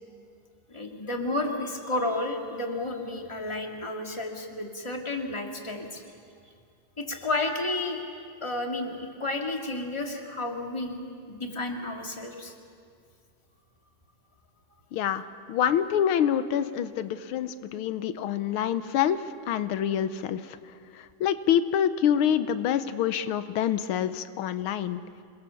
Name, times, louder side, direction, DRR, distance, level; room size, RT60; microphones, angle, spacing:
voice 1, 0.7-6.0 7.0-8.0 8.4-11.0 11.3-12.5, left 2 dB, 15° left, 2 dB, 2.1 m, -31 dB
voice 2, 14.9-15.2 15.5-20.4 20.9-25.0, left 9 dB, 90° left, 12 dB, 1.7 m, -26 dB
27.5 x 22.0 x 7.0 m, 2.2 s
omnidirectional pair, 2.3 m